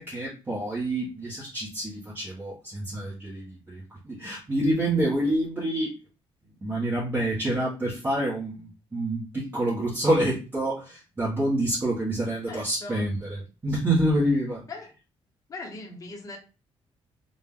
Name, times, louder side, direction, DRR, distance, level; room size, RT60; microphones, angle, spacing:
voice 1, 0.0-5.9 6.6-14.6, right 1 dB, 20° right, -7 dB, 1.3 m, -27 dB
voice 2, 12.5-13.1 14.7-14.9 15.5-16.4, left 3 dB, 35° left, 0 dB, 1.0 m, -39 dB
3.8 x 2.4 x 3.6 m, 0.32 s
cardioid pair, 145°, 10 cm